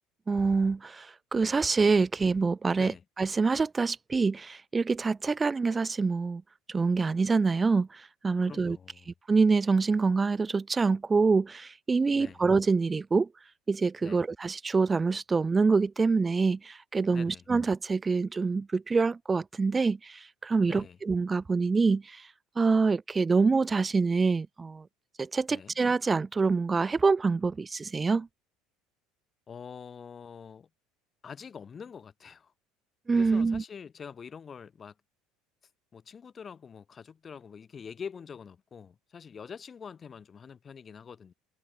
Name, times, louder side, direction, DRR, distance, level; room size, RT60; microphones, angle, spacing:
voice 1, 0.3-6.4 6.7-8.8 9.1-13.3 13.7-24.8 25.2-28.3 33.1-33.6, right 4 dB, 25° right, 0.4 m, -26 dB
voice 2, 8.4-9.1 12.1-12.4 14.0-14.2 17.1-17.4 20.6-21.0 25.5-25.7 29.5-30.7 31.2-32.5 33.1-34.9 35.9-41.3, left 6 dB, 35° left, 4.1 m, -45 dB
hypercardioid pair, 75°, 0 cm